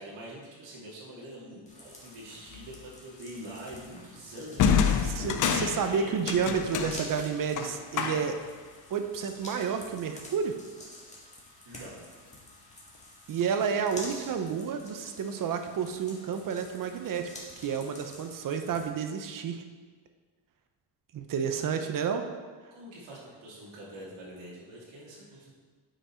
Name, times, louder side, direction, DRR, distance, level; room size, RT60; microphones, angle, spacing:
voice 1, 0.0-6.3 11.6-12.0 14.1-14.2 21.4-21.8 22.7-25.5, right 1 dB, 90° right, -5 dB, 2.4 m, -45 dB
sound 1, 1.7-18.9, left 1 dB, 15° left, 1.7 m, -49 dB
sound 2, 2.5-2.8 4.6-8.5, left 7 dB, 45° left, 0.6 m, -28 dB
voice 2, 5.0-8.4 8.9-10.6 13.3-17.3 17.6-19.6 21.1-22.3, right 6 dB, 50° right, 7 dB, 0.7 m, -30 dB
8.9 x 5.2 x 4.4 m, 1.5 s
cardioid pair, 135°, 43 cm